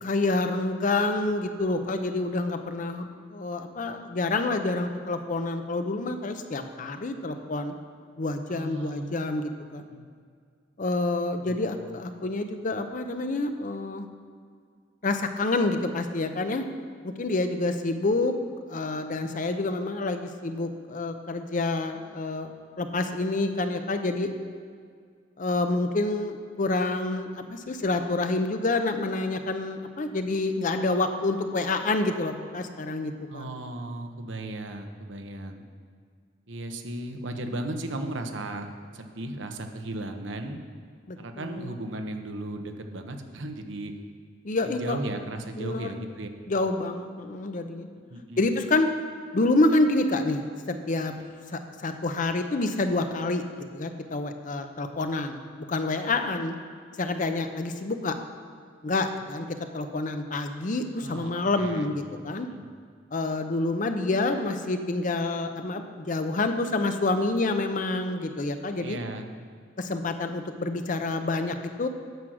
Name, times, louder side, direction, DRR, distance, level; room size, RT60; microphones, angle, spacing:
voice 1, 0.0-7.7 8.2-9.8 10.8-14.1 15.0-16.6 17.0-18.3 18.7-22.5 22.8-24.3 25.4-33.5 41.1-41.7 44.4-45.0 45.6-46.0 46.5-47.9 48.4-48.9 49.3-51.1 51.5-53.4 53.7-56.6 57.0-58.1 58.8-62.5 63.1-69.0 69.8-71.9, left 2 dB, 45° left, 7 dB, 0.6 m, -28 dB
voice 2, 8.5-9.2 9.9-10.1 11.3-12.0 33.3-35.6 36.5-38.7 38.9-40.6 41.2-43.9 44.6-46.3 48.1-48.5 61.0-61.9 62.5-62.7 68.8-69.3, right 1 dB, 75° right, 5 dB, 0.9 m, -36 dB
9.4 x 6.3 x 6.3 m, 2.1 s
head